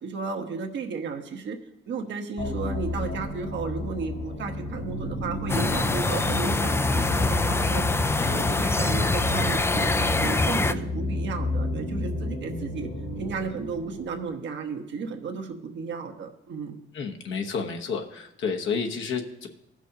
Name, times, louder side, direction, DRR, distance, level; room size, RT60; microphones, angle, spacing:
voice 1, 0.0-1.6 1.9-7.8 8.1-9.9 10.2-12.9 13.2-16.8, right 4 dB, 65° right, 4 dB, 1.1 m, -34 dB
sound 1, 2.4-14.2, left 1 dB, 55° left, 1.7 m, -31 dB
sound 2, 5.5-10.7, left 3 dB, 15° left, 0.3 m, -24 dB
voice 2, 16.9-19.5, left 5 dB, 70° left, 3 dB, 1.1 m, -30 dB
16.0 x 6.3 x 2.8 m, 0.83 s
cardioid pair, 90°, 20 cm